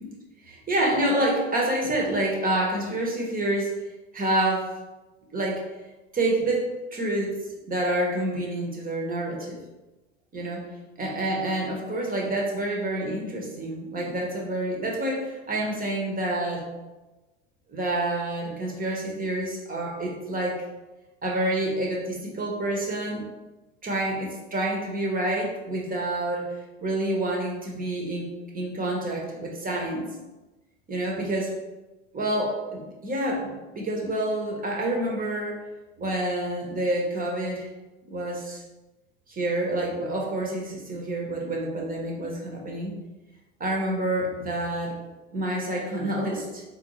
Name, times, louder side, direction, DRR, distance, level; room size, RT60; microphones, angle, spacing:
voice 1, 0.4-3.7 4.1-4.7 5.3-5.6 6.1-7.4 7.7-9.6 10.3-10.6 11.0-16.7 17.7-20.6 21.2-23.3 23.8-30.1 30.9-31.5 32.1-35.6 36.0-37.7 38.1-38.6 39.3-42.9 43.6-44.9 45.3-46.6, right 1 dB, 25° right, -1 dB, 1.0 m, -28 dB
3.8 x 2.6 x 3.0 m, 1.1 s
hypercardioid pair, 80°, 36 cm